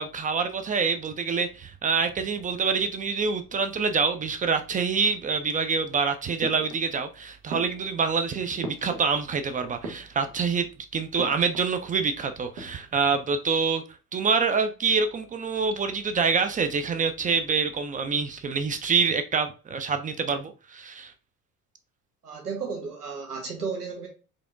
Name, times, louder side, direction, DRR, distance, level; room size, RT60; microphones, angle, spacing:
voice 1, 0.0-10.7 10.9-13.8 14.1-21.1, right 5 dB, 20° right, 0.4 m, -26 dB
sound 1, 6.4-7.1 7.5-9.4 9.7-10.6 11.2-11.8 12.0-12.1 12.4-13.1, right 2 dB, 65° right, 1.1 m, -39 dB
voice 2, 22.2-24.1, right 5 dB, 85° right, 1.1 m, -33 dB
4.7 x 2.9 x 2.5 m
figure-of-eight pair, 55°, 45 cm